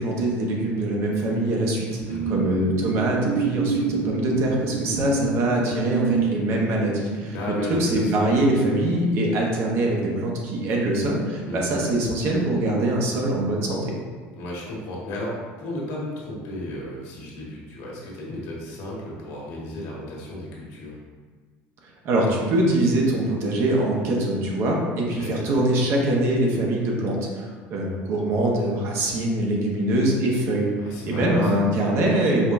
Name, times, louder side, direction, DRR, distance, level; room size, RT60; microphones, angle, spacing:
voice 1, 0.0-2.0 2.3-7.3 7.7-13.9 22.0-30.7 31.0-32.5, right 1 dB, 50° right, -1 dB, 1.0 m, -23 dB
sound 1, 1.1-10.1 10.4-10.7, right 6 dB, 85° right, 0.4 m, -30 dB
voice 2, 7.3-8.5 11.4-11.6 14.4-21.0 25.2-25.3 30.8-31.5, left 1 dB, 70° left, -4 dB, 1.4 m, -33 dB
5.1 x 3.5 x 2.6 m, 1.5 s
cardioid pair, 135°, 5 cm